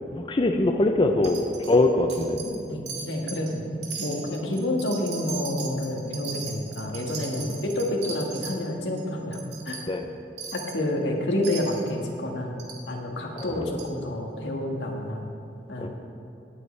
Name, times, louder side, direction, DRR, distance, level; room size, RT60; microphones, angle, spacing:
voice 1, 0.1-2.4 9.9-10.0 13.4-13.7 15.8-15.9, left 2 dB, 30° left, 5 dB, 0.5 m, -23 dB
Wind chime, 1.2-1.8 2.1-2.6 2.9-3.5 3.8-8.5 9.0-9.1 9.3-9.8 10.4-10.8 11.4-11.9 12.6-12.8 13.4-13.5 13.8-13.9, right 5 dB, 75° right, 1.9 m, -38 dB
voice 2, 2.4-3.7 4.0-9.8 10.5-12.6 12.9-15.3 15.7-15.9, left 1 dB, 90° left, 0 dB, 1.6 m, -29 dB
18.0 x 8.2 x 3.3 m, 2.9 s
head